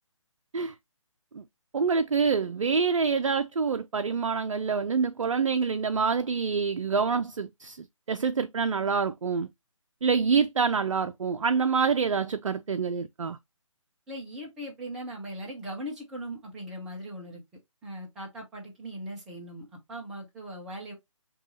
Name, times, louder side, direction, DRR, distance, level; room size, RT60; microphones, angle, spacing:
voice 1, 1.7-7.8 8.1-9.5 10.0-13.4, right 5 dB, 70° right, 0.4 m, -26 dB
voice 2, 14.1-17.4 17.8-20.9, equal, 5° right, 0.3 m, -39 dB
5.9 x 2.3 x 2.8 m
figure-of-eight pair, 145°, 17 cm